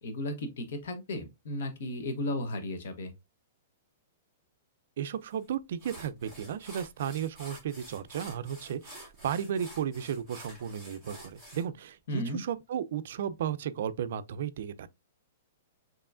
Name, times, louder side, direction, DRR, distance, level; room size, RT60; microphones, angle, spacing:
voice 1, 0.0-3.1 12.1-12.4, left 1 dB, 65° left, 1.0 m, -34 dB
voice 2, 5.0-14.9, right 9 dB, 60° right, 0.3 m, -34 dB
sound 1, 5.3-5.4 5.8-11.6, equal, 5° left, 1.9 m, -49 dB
4.7 x 2.9 x 2.4 m
hypercardioid pair, 165°, 0 cm